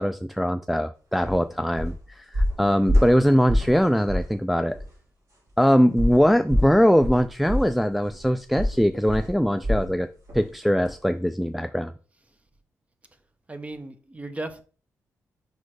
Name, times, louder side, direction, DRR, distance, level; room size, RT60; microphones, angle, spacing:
voice 1, 0.0-4.8 5.6-10.1 10.3-11.9, equal, ahead, 0.3 m, -21 dB
sound 1, 1.2-1.4 1.7-2.0 2.3-3.8 4.1-4.3 4.7-4.8 6.0-10.0 10.3-10.5 10.8-10.9, left 1 dB, 60° right, 3.0 m, -26 dB
voice 2, 13.5-14.6, right 2 dB, 20° right, 0.9 m, -35 dB
5.2 x 4.1 x 4.7 m
cardioid pair, 65°, 6 cm